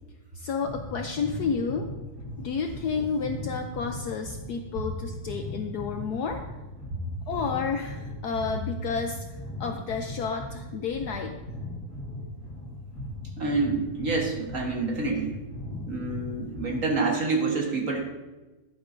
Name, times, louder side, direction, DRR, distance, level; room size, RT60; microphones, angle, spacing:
voice 1, 0.3-1.9 2.4-6.4 7.3-9.2 9.6-11.3, left 5 dB, 70° left, 4 dB, 1.0 m, -31 dB
sound 1, 0.6-17.0, left 1 dB, 45° left, 2.6 m, -38 dB
voice 2, 13.4-15.4 15.7-18.0, right 3 dB, 45° right, 0 dB, 1.5 m, -27 dB
11.0 x 10.0 x 2.6 m, 1.1 s
omnidirectional pair, 2.2 m